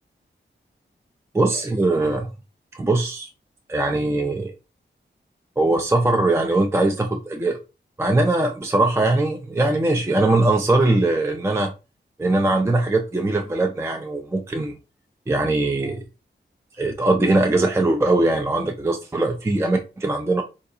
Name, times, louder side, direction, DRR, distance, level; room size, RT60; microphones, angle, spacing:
voice 1, 1.3-2.3 2.7-3.3 3.7-4.5 5.6-7.6 8.0-11.7 12.2-14.8 15.3-16.0 16.8-20.4, right 2 dB, 15° right, 0.3 m, -21 dB
3.8 x 2.3 x 2.6 m
wide cardioid pair, 130°, 20 cm